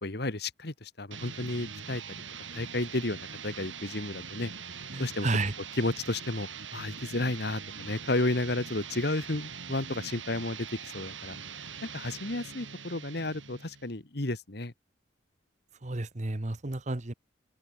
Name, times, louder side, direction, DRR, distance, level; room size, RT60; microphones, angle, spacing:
voice 1, 0.0-2.0 2.5-5.3 5.8-14.7, left 2 dB, 60° left, 1.8 m, -32 dB
sound 1, 1.1-13.9, right 6 dB, 85° right, 7.8 m, -43 dB
voice 2, 4.9-5.5 15.8-17.1, right 2 dB, 40° right, 1.1 m, -31 dB
head